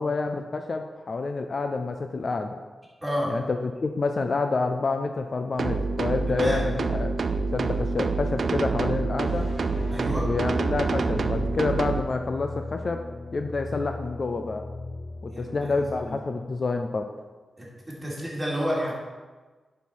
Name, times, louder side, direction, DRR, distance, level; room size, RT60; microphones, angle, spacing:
voice 1, 0.0-2.6 3.3-7.1 7.5-9.5 10.2-13.0 13.3-14.6 15.2-17.1, left 3 dB, 45° left, 6 dB, 0.5 m, -28 dB
voice 2, 3.0-3.3 6.3-6.6 9.9-10.3 15.3-16.2 17.6-18.9, equal, 10° right, -6 dB, 2.8 m, -31 dB
sound 1, 5.6-12.0, right 4 dB, 55° right, 0.5 m, -27 dB
sound 2, 9.2-16.1, left 2 dB, 90° left, 2.3 m, -38 dB
10.0 x 5.6 x 4.7 m, 1.3 s
wide cardioid pair, 135°, 0 cm